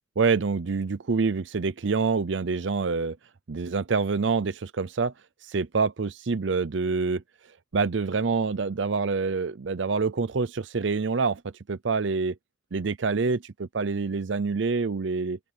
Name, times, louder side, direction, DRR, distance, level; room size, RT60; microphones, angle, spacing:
voice 1, 0.2-3.2 3.5-5.1 5.4-7.2 7.7-11.4 11.7-12.4 12.7-15.4, right 4 dB, 70° right, 0.6 m, -26 dB
open air
head